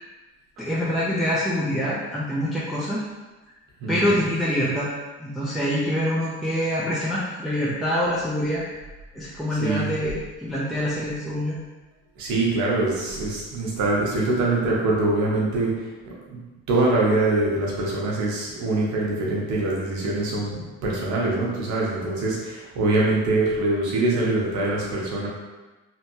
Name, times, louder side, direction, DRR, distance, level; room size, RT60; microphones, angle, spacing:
voice 1, 0.6-3.0 3.9-4.9 5.2-8.6 9.1-11.6, equal, ahead, -7 dB, 0.6 m, -25 dB
voice 2, 3.8-4.1 9.6-9.9 12.2-16.4 16.7-25.3, right 2 dB, 75° right, -4 dB, 1.0 m, -24 dB
3.0 x 2.1 x 3.0 m, 1.2 s
supercardioid pair, 65°, 30 cm